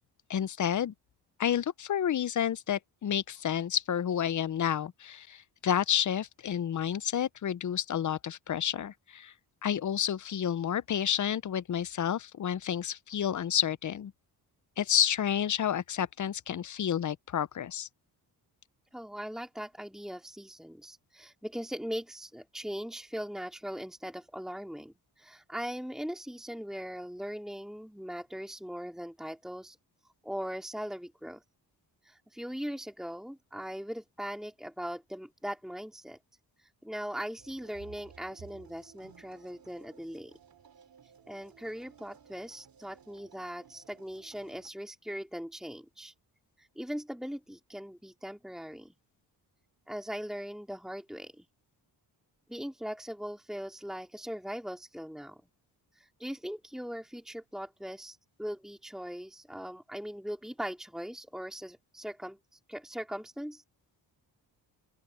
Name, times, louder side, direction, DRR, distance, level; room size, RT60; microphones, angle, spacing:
voice 1, 0.3-0.9 1.4-9.3 9.6-14.1 14.8-17.9, left 9 dB, 45° left, 0.7 m, -30 dB
voice 2, 18.9-29.8 30.2-31.4 32.0-36.2 36.6-40.3 41.3-46.1 46.6-48.9 49.9-51.5 52.5-55.4 56.0-63.6, equal, ahead, 2.7 m, -40 dB
sound 1, 37.4-44.7, right 7 dB, 55° right, 2.9 m, -56 dB
open air
cardioid pair, 80°, 42 cm